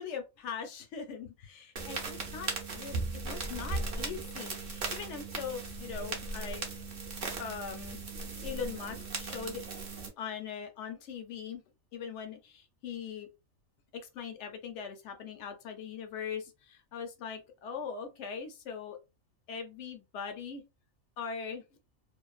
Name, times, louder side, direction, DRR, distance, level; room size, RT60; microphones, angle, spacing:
voice 1, 0.0-3.0 3.2-6.6 7.4-8.0 8.4-9.9 10.2-11.6 11.9-13.3 13.9-19.0 19.5-20.6 21.2-21.6, left 6 dB, 65° left, 5 dB, 0.8 m, -41 dB
sound 1, 1.8-10.1, right 3 dB, 50° right, 0.7 m, -38 dB
2.5 x 2.1 x 2.3 m, 0.26 s
omnidirectional pair, 1.4 m